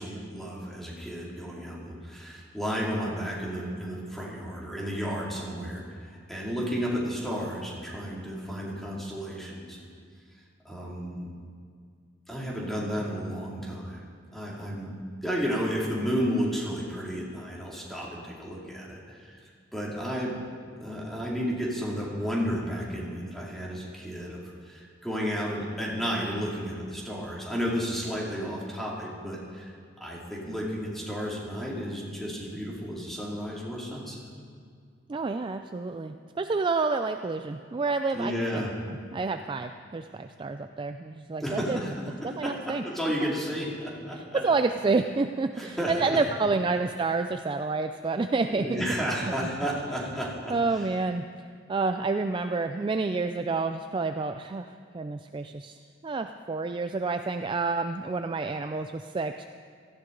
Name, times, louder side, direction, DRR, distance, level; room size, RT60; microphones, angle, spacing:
voice 1, 0.0-9.9 10.6-11.3 12.3-14.0 14.3-14.9 15.2-19.4 19.7-20.3 20.8-29.7 30.0-34.2 38.1-38.7 41.4-41.9 42.2-44.4 45.5-46.2 48.4-50.8, equal, ahead, -4 dB, 2.6 m, -32 dB
voice 2, 35.1-38.7 39.1-41.8 42.2-42.8 43.2-43.3 44.4-48.8 49.2-49.3 50.5-51.2 51.7-55.8 56.0-59.4, right 3 dB, 25° right, 7 dB, 0.3 m, -29 dB
17.0 x 14.5 x 3.9 m, 2.1 s
head